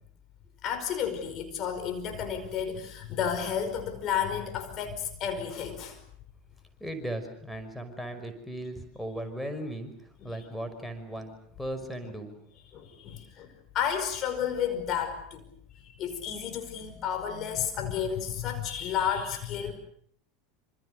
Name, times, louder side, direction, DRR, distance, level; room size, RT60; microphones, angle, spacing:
voice 1, 0.6-6.0 10.2-10.3 12.7-15.4 15.7-19.8, left 8 dB, 45° left, 7 dB, 5.2 m, -32 dB
voice 2, 6.8-9.9 10.2-12.4, right 1 dB, ahead, 8 dB, 5.6 m, -37 dB
27.5 x 27.0 x 6.7 m, 0.62 s
figure-of-eight pair, 80°, 0 cm